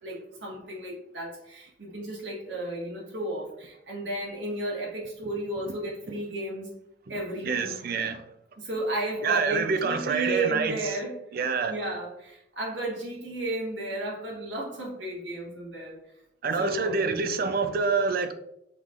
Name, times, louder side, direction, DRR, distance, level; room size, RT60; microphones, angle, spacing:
voice 1, 0.0-6.7 7.1-7.7 8.6-11.2 11.7-16.0 16.6-17.0, right 1 dB, 80° right, -3 dB, 1.5 m, -33 dB
voice 2, 7.4-8.2 9.2-11.0 11.3-11.7 16.4-18.3, right 5 dB, 55° right, 9 dB, 0.5 m, -27 dB
5.6 x 3.2 x 2.5 m, 0.80 s
head